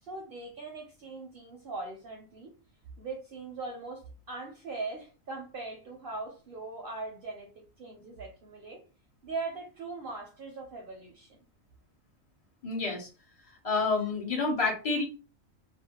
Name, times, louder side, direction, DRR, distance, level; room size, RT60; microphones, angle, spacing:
voice 1, 0.0-2.5 3.0-8.8 9.2-11.4, right 3 dB, 65° right, 1 dB, 0.6 m, -40 dB
voice 2, 12.6-13.1 13.6-15.1, left 3 dB, 55° left, -1 dB, 0.4 m, -28 dB
2.4 x 2.1 x 2.7 m, 0.34 s
omnidirectional pair, 1.4 m